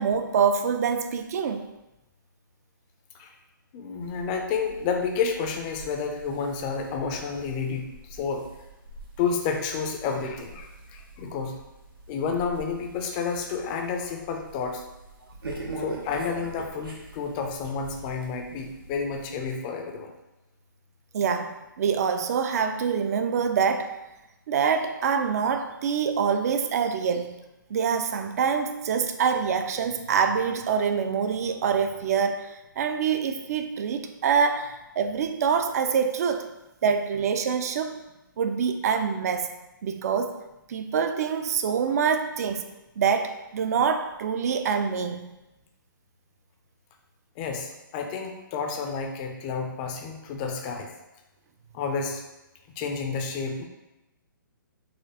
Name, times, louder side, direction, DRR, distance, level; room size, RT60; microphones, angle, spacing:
voice 1, 0.0-1.7 21.1-23.9 24.5-27.4 27.7-36.5 36.8-38.0 38.4-39.5 39.8-40.4 40.7-42.7 43.0-45.3, right 6 dB, 45° right, 8 dB, 0.4 m, -25 dB
voice 2, 3.7-8.5 9.2-11.6 12.1-14.8 15.8-20.1 47.4-50.9 51.7-52.2 52.8-53.7, left 5 dB, 25° left, 3 dB, 0.4 m, -30 dB
sound 1, 4.0-19.5, right 2 dB, 90° right, 0.8 m, -44 dB
4.1 x 2.5 x 2.8 m, 0.98 s
hypercardioid pair, 145°, 11 cm